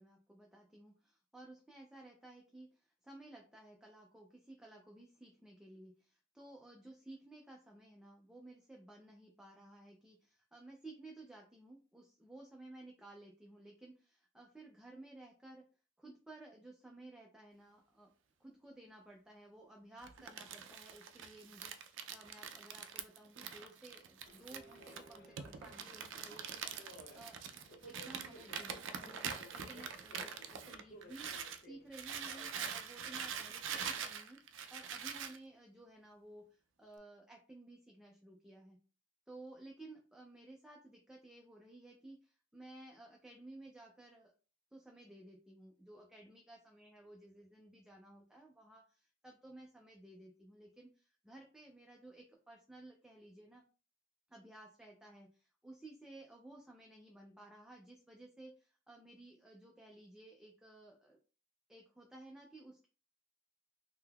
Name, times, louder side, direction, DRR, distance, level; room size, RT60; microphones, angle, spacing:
voice 1, 0.0-15.6 16.0-18.1 18.4-27.4 27.9-31.3 31.6-38.8 39.3-44.3 44.7-53.6 54.3-61.2 61.7-62.9, right 2 dB, 5° right, -1 dB, 0.4 m, -56 dB
Crumpling crinkling, 20.0-31.6 31.9-35.4, right 7 dB, 70° right, 0.4 m, -44 dB
Subway metro underground, 24.3-34.0, equal, 55° left, 0.7 m, -58 dB
3.6 x 2.7 x 2.3 m, 0.36 s
head